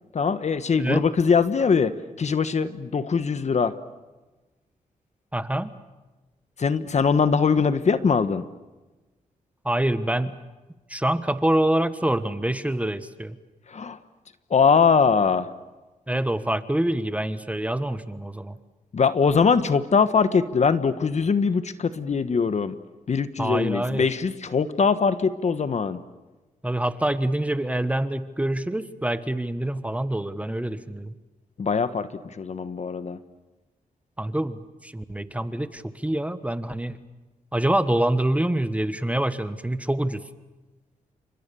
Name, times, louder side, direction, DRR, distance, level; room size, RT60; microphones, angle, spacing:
voice 1, 0.1-3.7 6.6-8.4 13.7-14.0 14.5-15.5 18.9-22.7 23.1-26.0 31.6-32.1 32.4-33.2, left 5 dB, 50° left, 12 dB, 1.4 m, -22 dB
voice 2, 5.3-5.7 9.6-10.4 10.9-13.4 16.1-18.6 23.4-24.1 26.6-31.1 34.2-37.0 37.5-40.2, right 1 dB, 10° right, 12 dB, 1.3 m, -26 dB
29.5 x 26.0 x 7.0 m, 1.1 s
cardioid pair, 75°, 14 cm